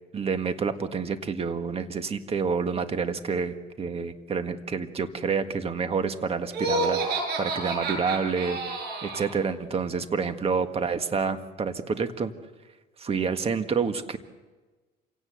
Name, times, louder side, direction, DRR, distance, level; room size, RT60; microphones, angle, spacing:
voice 1, 0.1-12.3 13.0-14.2, right 5 dB, 35° right, 9 dB, 1.7 m, -28 dB
Laughter, 6.5-9.3, right 2 dB, 75° right, 7.0 m, -29 dB
27.5 x 17.5 x 8.1 m, 1.2 s
cardioid pair, 110°, 17 cm